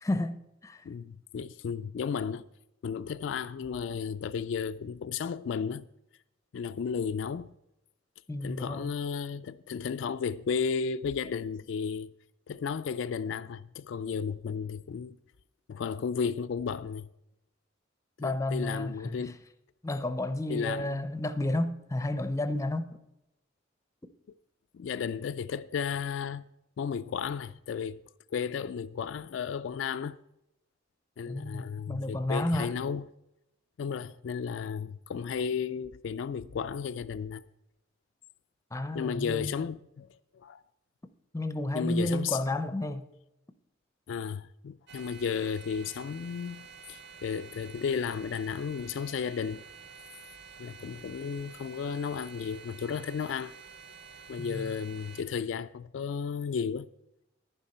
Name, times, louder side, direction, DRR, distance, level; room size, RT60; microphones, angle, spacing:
voice 1, 0.0-0.8 8.3-8.9 18.2-19.3 19.8-23.0 31.3-32.7 38.7-39.7 41.3-43.1 54.4-54.7, left 1 dB, 15° left, 0.6 m, -32 dB
voice 2, 0.8-2.5 2.8-5.9 6.5-7.5 8.4-12.1 12.5-15.2 15.7-17.1 18.2-19.4 20.5-21.0 24.7-26.5 26.8-28.0 28.3-30.2 31.2-33.1 33.8-37.4 38.9-40.6 41.7-42.4 44.1-49.6 50.6-53.5 54.3-56.9, left 6 dB, 65° left, 0.3 m, -34 dB
sound 1, 44.9-55.2, right 5 dB, 60° right, 0.9 m, -50 dB
10.5 x 10.5 x 4.3 m
head